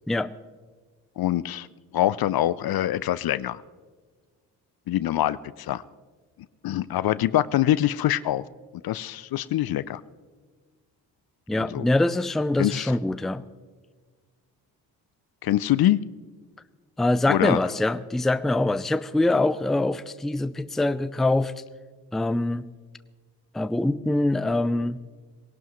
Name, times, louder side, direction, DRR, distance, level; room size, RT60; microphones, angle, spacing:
voice 1, 1.2-1.7 1.9-3.6 4.9-5.8 6.6-8.4 8.8-10.0 11.6-11.9 12.6-12.9 15.4-16.0 17.3-17.6, left 13 dB, 55° left, 18 dB, 0.6 m, -24 dB
voice 2, 11.5-13.4 17.0-21.5 22.1-22.6 23.5-25.0, left 2 dB, ahead, 14 dB, 0.5 m, -24 dB
20.0 x 17.5 x 3.1 m, 1.5 s
hypercardioid pair, 50°, 45 cm